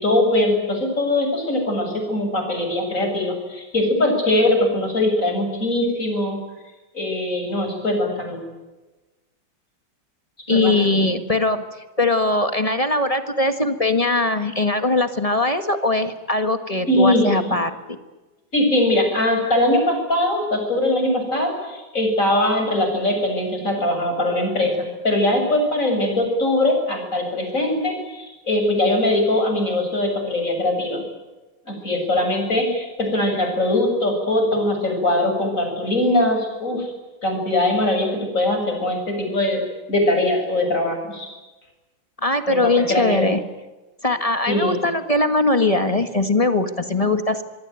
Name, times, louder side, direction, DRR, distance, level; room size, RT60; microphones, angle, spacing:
voice 1, 0.0-6.4 6.9-8.4 10.5-10.7 16.9-17.5 18.5-31.0 31.7-36.9 37.2-38.1 38.3-39.6 39.9-41.3 42.5-43.4 44.5-44.8, left 1 dB, 35° left, 3 dB, 7.8 m, -21 dB
voice 2, 10.5-11.6 12.0-18.0 42.2-43.4 44.0-47.4, left 2 dB, 20° left, 8 dB, 1.5 m, -21 dB
25.5 x 22.0 x 9.3 m, 1.1 s
omnidirectional pair, 2.3 m